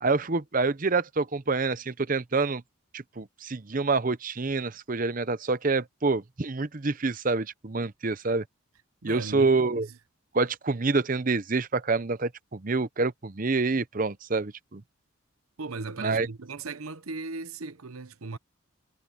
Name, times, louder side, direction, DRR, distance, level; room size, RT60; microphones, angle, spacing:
voice 1, 0.0-2.6 2.9-8.4 9.0-9.9 10.3-14.8 16.0-16.3, right 3 dB, 40° right, 0.7 m, -27 dB
voice 2, 9.0-9.9 15.6-18.4, right 3 dB, 85° right, 0.9 m, -37 dB
head